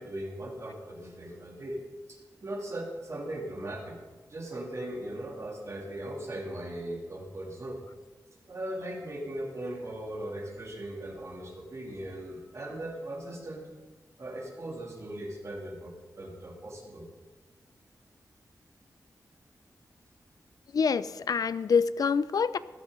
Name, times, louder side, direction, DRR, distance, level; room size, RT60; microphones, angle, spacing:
voice 1, 0.0-1.8 2.1-3.9 4.3-7.8 8.5-13.7 14.2-17.1, right 1 dB, 45° right, -1 dB, 3.2 m, -38 dB
voice 2, 20.7-22.6, left 5 dB, 70° left, 15 dB, 0.5 m, -26 dB
16.0 x 12.5 x 4.1 m, 1.4 s
wide cardioid pair, 120°, 7 cm